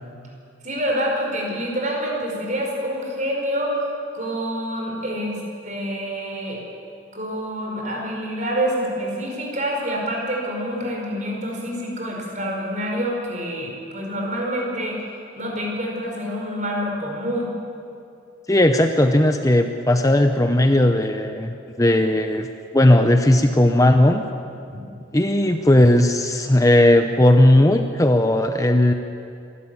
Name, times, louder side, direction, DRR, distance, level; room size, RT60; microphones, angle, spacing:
voice 1, 0.6-3.9 4.1-6.6 7.1-15.0 15.4-17.5 24.7-24.8, equal, 40° right, -1 dB, 5.0 m, -27 dB
voice 2, 18.5-22.5 22.7-24.2 25.1-28.9, left 1 dB, 15° left, 7 dB, 0.7 m, -16 dB
26.5 x 12.5 x 8.7 m, 2.5 s
head